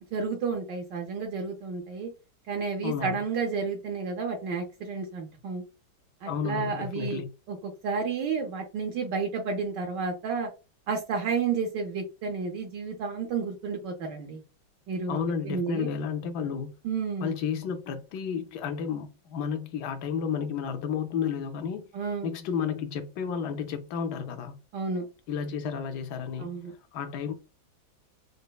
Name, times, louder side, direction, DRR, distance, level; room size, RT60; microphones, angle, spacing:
voice 1, 0.1-2.1 2.5-5.6 6.2-7.2 7.5-10.5 10.9-14.4 14.9-15.2 15.4-15.9 16.8-17.3 21.9-22.3 24.7-25.0 26.4-26.7, right 5 dB, 70° right, 1.2 m, -31 dB
voice 2, 2.8-3.2 6.3-7.3 15.1-16.7 17.2-21.9 22.2-24.6 25.3-26.6 26.9-27.3, left 7 dB, 70° left, 1.0 m, -32 dB
5.2 x 2.0 x 2.2 m
omnidirectional pair, 2.1 m